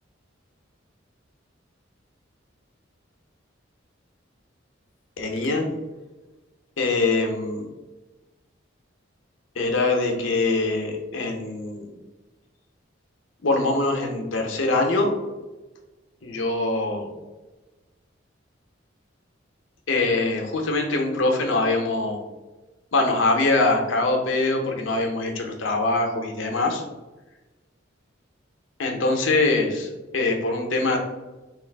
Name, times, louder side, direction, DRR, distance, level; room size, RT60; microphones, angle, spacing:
voice 1, 5.2-5.7 6.8-7.7 9.6-11.9 13.4-15.1 16.2-17.1 19.9-22.2 22.9-26.8 28.8-31.0, left 2 dB, 80° left, 2 dB, 0.7 m, -23 dB
3.1 x 2.4 x 3.3 m, 1.1 s
head